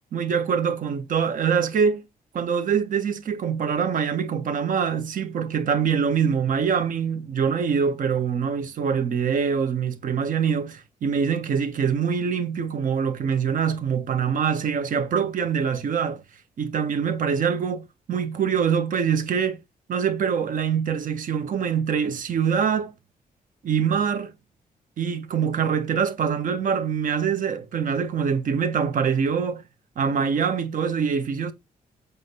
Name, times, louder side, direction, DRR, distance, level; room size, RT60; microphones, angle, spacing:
voice 1, 0.1-2.0 2.3-16.2 16.6-19.6 19.9-22.9 23.6-24.3 25.0-29.6 29.9-31.5, right 7 dB, 65° right, 1.6 m, -24 dB
7.7 x 3.6 x 5.7 m
cardioid pair, 140°, 15 cm